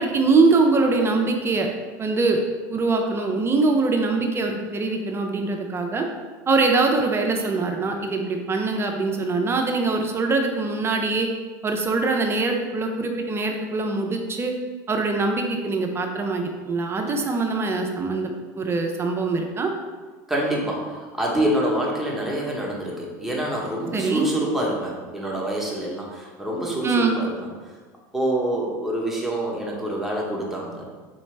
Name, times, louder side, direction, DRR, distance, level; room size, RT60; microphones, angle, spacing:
voice 1, 0.0-1.7 2.0-2.4 2.7-6.1 6.5-11.3 11.6-14.5 14.9-19.7 23.9-24.3 26.8-27.2, right 3 dB, 25° right, 3 dB, 0.5 m, -23 dB
voice 2, 20.3-27.5 28.1-30.9, right 1 dB, 5° right, -3 dB, 1.0 m, -26 dB
4.0 x 3.0 x 3.3 m, 1.4 s
supercardioid pair, 95°, 9 cm